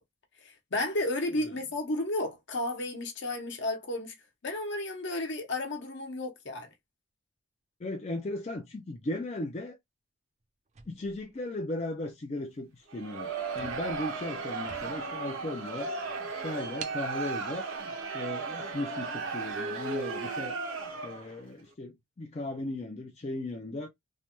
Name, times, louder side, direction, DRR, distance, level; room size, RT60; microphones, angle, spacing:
voice 1, 0.4-4.1 4.4-6.7, left 2 dB, 55° left, 0.9 m, -33 dB
voice 2, 7.8-9.8 10.9-13.3 13.5-15.9 16.4-17.7 18.1-20.5 21.0-23.9, left 2 dB, 30° left, 0.4 m, -36 dB
sound 1, 10.7-12.0 12.6-12.8 13.1-13.2 13.5-15.2 15.7-15.8 16.8-17.1, right 6 dB, 35° right, 0.4 m, -47 dB
Crowd, 12.9-21.4, right 4 dB, 70° right, 0.8 m, -35 dB
3.1 x 2.1 x 2.9 m
head